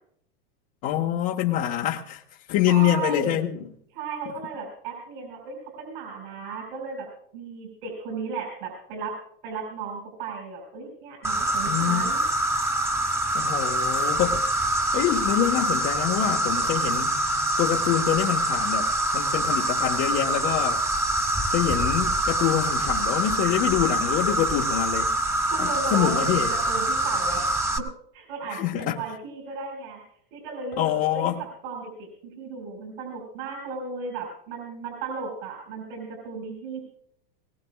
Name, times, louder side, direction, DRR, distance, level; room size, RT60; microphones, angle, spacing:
voice 1, 0.8-2.2 2.5-3.7 11.7-12.1 13.3-14.4 14.9-17.2 17.6-20.8 21.5-25.1 25.6-26.6 28.5-29.0 30.8-31.4, left 12 dB, 50° left, -1 dB, 1.3 m, -25 dB
voice 2, 2.7-3.5 3.9-7.1 7.3-9.1 9.4-12.2 25.5-27.5 27.8-27.9 28.1-30.0 30.3-32.1 32.4-36.8, right 4 dB, 70° right, 1 dB, 5.5 m, -35 dB
Insect, 11.2-27.8, right 1 dB, 10° right, 1.3 m, -25 dB
22.0 x 18.0 x 2.3 m, 0.67 s
supercardioid pair, 135°, 29 cm